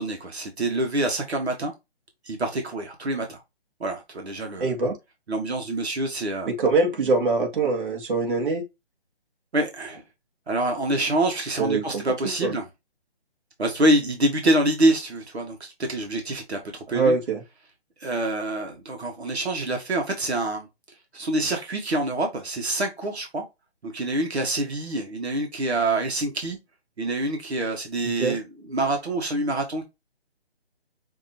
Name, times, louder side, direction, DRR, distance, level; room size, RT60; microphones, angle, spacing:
voice 1, 0.0-1.7 2.2-3.4 3.8-4.7 5.3-6.5 9.5-10.0 10.5-12.6 13.6-17.1 18.0-20.7 21.1-23.4 23.8-26.6 27.0-28.4 28.7-29.8, right 1 dB, 75° right, 1.6 m, -26 dB
voice 2, 4.6-5.0 6.5-8.6 11.6-12.5 16.9-17.4 28.2-28.4, right 3 dB, 50° right, 1.8 m, -24 dB
6.0 x 2.9 x 2.8 m
hypercardioid pair, 170°, 32 cm